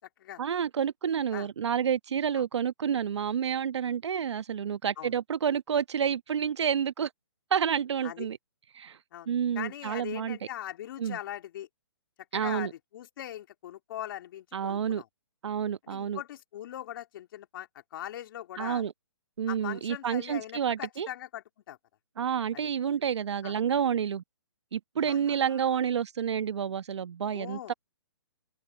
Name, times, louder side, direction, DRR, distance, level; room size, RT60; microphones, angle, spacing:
voice 1, 0.4-7.1 7.5-8.4 8.7-9.0 9.3-10.4 11.0-11.2 12.3-12.7 14.5-15.0 15.4-16.2 18.6-18.9 19.4-21.1 22.2-24.2 24.7-27.7, right 8 dB, 70° right, 1.2 m, -29 dB
voice 2, 9.1-11.7 12.3-15.1 15.8-18.8 19.5-21.8 22.5-22.7 23.4-23.5 25.0-25.7 27.3-27.7, left 12 dB, 50° left, 3.2 m, -41 dB
open air
hypercardioid pair, 145°, 15 cm